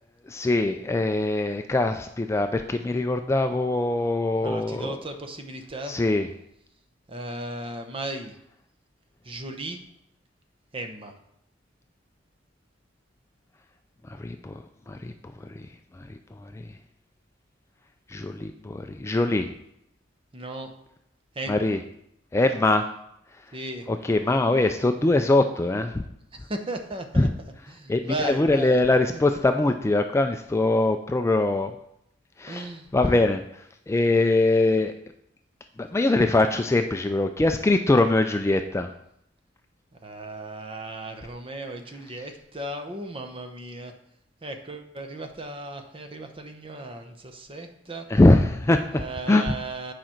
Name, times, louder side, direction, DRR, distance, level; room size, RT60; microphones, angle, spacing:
voice 1, 0.3-5.0 5.9-6.3 14.2-15.1 15.4-15.7 16.0-16.1 16.4-16.6 18.1-19.5 21.5-21.8 22.3-22.9 23.9-26.0 27.2-27.3 27.9-31.7 32.4-33.4 33.9-34.9 35.8-38.9 48.1-48.8 49.3-49.4, left 2 dB, 15° left, 6 dB, 0.3 m, -22 dB
voice 2, 4.4-6.0 7.1-8.4 9.2-9.8 10.7-11.1 20.3-20.8 21.3-21.8 23.5-23.9 24.3-24.6 26.3-27.3 27.7-28.8 29.7-29.8 32.5-32.9 40.0-44.0 44.4-48.1 48.9-49.9, right 1 dB, 30° right, 5 dB, 0.8 m, -36 dB
8.7 x 5.1 x 4.4 m, 0.75 s
head